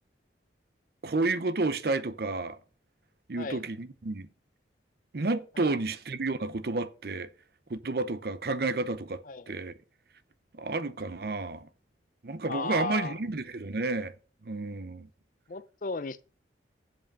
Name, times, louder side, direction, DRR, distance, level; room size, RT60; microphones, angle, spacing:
voice 1, 1.0-2.6 3.3-4.3 5.1-7.3 7.7-9.7 10.5-11.7 12.2-14.1 14.4-15.1, right 3 dB, 55° right, 0.6 m, -31 dB
voice 2, 12.5-13.2 15.5-16.2, left 4 dB, 45° left, 0.5 m, -35 dB
7.6 x 7.6 x 5.4 m
head